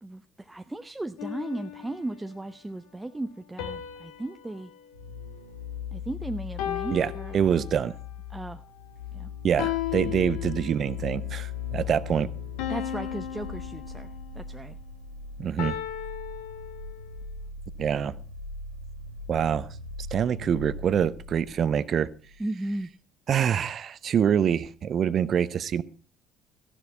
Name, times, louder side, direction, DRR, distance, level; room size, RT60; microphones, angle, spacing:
voice 1, 0.0-4.7 5.9-7.4 8.3-8.6 9.1-9.3 12.7-14.8 22.4-22.9, right 2 dB, 10° right, 8 dB, 0.7 m, -36 dB
sound 1, 1.2-2.4 3.6-6.0 6.6-8.1 9.6-11.1 12.6-14.5 15.6-17.2, left 11 dB, 65° left, 1.3 m, -36 dB
sound 2, 4.9-22.5 22.7-22.8, left 6 dB, 90° right, 1.7 m, -39 dB
voice 2, 6.9-8.0 9.4-12.3 15.4-15.8 17.8-18.2 19.3-19.7 20.1-22.1 23.3-25.8, right 8 dB, 45° right, 17 dB, 0.7 m, -25 dB
15.0 x 11.0 x 4.6 m, 0.36 s
figure-of-eight pair, 55°, 0 cm